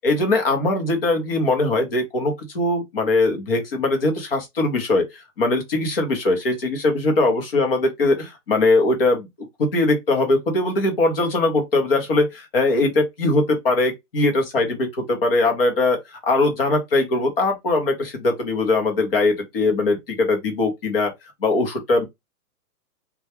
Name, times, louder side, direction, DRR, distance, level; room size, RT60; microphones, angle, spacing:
voice 1, 0.0-9.3 9.6-21.1 21.4-22.0, left 2 dB, 40° left, 0.7 m, -21 dB
2.2 x 2.1 x 2.8 m
hypercardioid pair, 180°, 46 cm